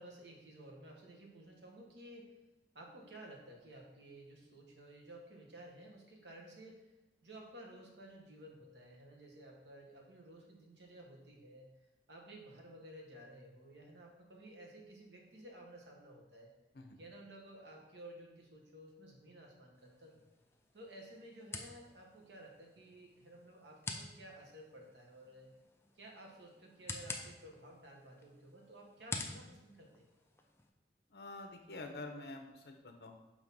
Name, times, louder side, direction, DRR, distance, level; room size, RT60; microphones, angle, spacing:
voice 1, 0.0-2.3 2.7-6.9 7.2-16.5 17.0-20.2 20.7-25.5 25.9-30.1, right 1 dB, 85° right, 0 dB, 1.2 m, -54 dB
Amp switch, 19.7-30.7, left 3 dB, 15° left, 0.4 m, -49 dB
voice 2, 31.1-33.1, left 2 dB, 65° left, 4 dB, 0.8 m, -47 dB
6.3 x 2.9 x 5.4 m, 1.0 s
head